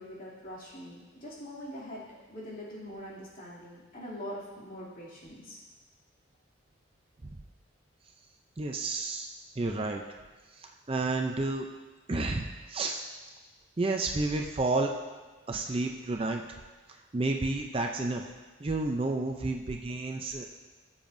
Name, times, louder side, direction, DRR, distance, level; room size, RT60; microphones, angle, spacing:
voice 1, 0.0-5.6, equal, 45° left, -7 dB, 2.7 m, -43 dB
voice 2, 8.6-10.0 10.5-11.7 12.1-13.0 13.8-14.9 15.5-16.4 17.1-18.2 18.6-20.5, right 2 dB, 25° right, 3 dB, 0.4 m, -31 dB
16.5 x 7.2 x 2.6 m, 1.3 s
head